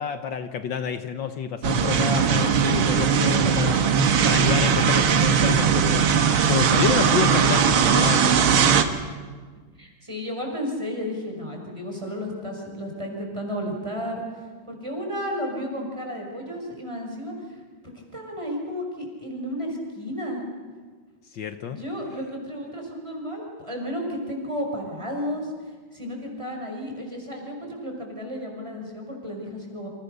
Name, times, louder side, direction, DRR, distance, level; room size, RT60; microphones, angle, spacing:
voice 1, 0.0-8.4 21.3-21.8, left 7 dB, 65° left, 8 dB, 1.7 m, -29 dB
sound 1, 1.6-8.8, right 6 dB, 90° right, 2.3 m, -19 dB
voice 2, 9.8-14.2 14.7-17.3 18.1-20.4 21.7-25.5 25.9-29.9, equal, 15° right, 1 dB, 5.8 m, -32 dB
29.0 x 27.0 x 6.8 m, 1.5 s
omnidirectional pair, 2.2 m